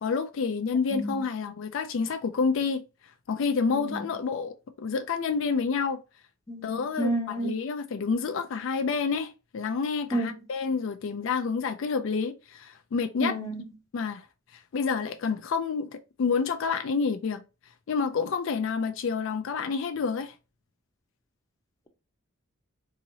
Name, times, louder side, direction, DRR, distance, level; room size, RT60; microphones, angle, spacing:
voice 1, 0.0-2.8 3.3-6.0 6.6-13.4 13.9-14.2 14.5-17.4 17.9-20.3, left 5 dB, 65° left, 0.4 m, -29 dB
voice 2, 0.9-1.2 3.7-4.1 6.5-7.6 10.1-10.3 13.2-13.6, right 1 dB, 15° left, 0.6 m, -31 dB
3.8 x 2.9 x 2.7 m
head